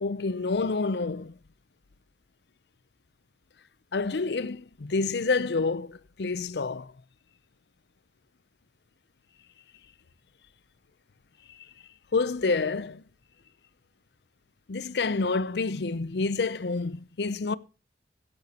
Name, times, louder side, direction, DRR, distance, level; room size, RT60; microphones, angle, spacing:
voice 1, 0.0-1.3 3.9-6.9 12.1-13.0 14.7-17.6, left 4 dB, 65° left, 0.6 m, -28 dB
15.0 x 11.0 x 2.9 m
head